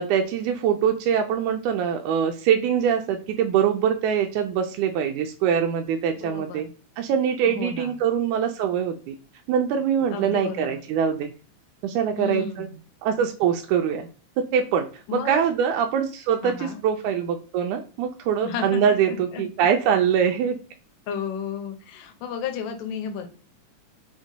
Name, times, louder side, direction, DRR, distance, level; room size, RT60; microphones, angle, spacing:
voice 1, 0.0-6.7 7.0-9.1 9.5-11.3 11.8-12.7 13.0-14.1 14.5-14.9 15.1-20.6, right 8 dB, 85° right, 4 dB, 1.7 m, -23 dB
voice 2, 6.1-6.7 7.5-8.0 10.1-10.8 12.2-12.8 15.1-15.5 16.4-16.8 18.4-19.4 21.1-23.3, left 6 dB, 80° left, 5 dB, 2.2 m, -33 dB
6.1 x 2.2 x 4.0 m, 0.37 s
omnidirectional pair, 4.0 m